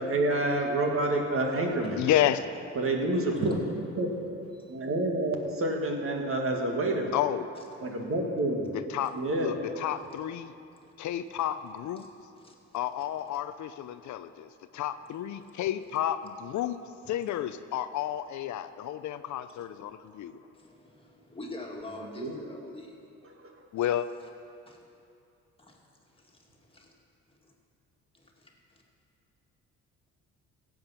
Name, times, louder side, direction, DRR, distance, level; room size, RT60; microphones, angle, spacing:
voice 1, 0.0-2.0 2.8-3.6 4.0-4.2 4.7-7.1 7.8-8.7 9.1-9.6 22.2-22.4, right 2 dB, 45° right, 1 dB, 1.9 m, -28 dB
voice 2, 2.0-2.4 7.1-7.4 8.9-9.1 9.4-10.5 11.0-12.1 12.7-14.5 14.7-16.8 17.1-20.4 23.7-24.1, left 11 dB, 70° left, 11 dB, 0.5 m, -31 dB
voice 3, 4.5-4.9 7.8-8.1 10.8-10.9 12.0-12.1 12.3-12.6 12.9-13.4 14.7-15.0 15.4-15.5 20.3-23.0 24.7-24.8 25.6-25.8 26.1-27.0 27.3-27.5 28.1-28.8, left 2 dB, 20° left, 0 dB, 2.1 m, -47 dB
15.5 x 7.9 x 5.7 m, 2.5 s
cardioid pair, 90°, 30 cm